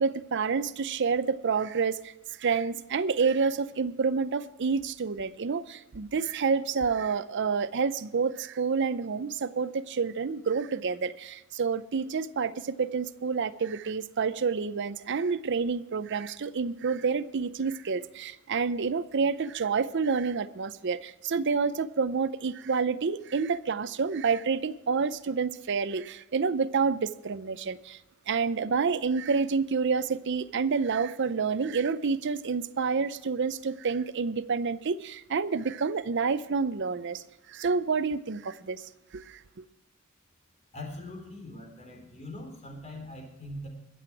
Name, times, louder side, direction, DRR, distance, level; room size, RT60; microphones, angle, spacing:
voice 1, 0.0-2.1 2.4-28.0 28.3-37.2 37.5-38.8 39.1-39.4, right 5 dB, 55° right, 0.6 m, -28 dB
voice 2, 40.7-43.7, left 1 dB, 30° left, 3.7 m, -42 dB
21.5 x 7.8 x 4.7 m
head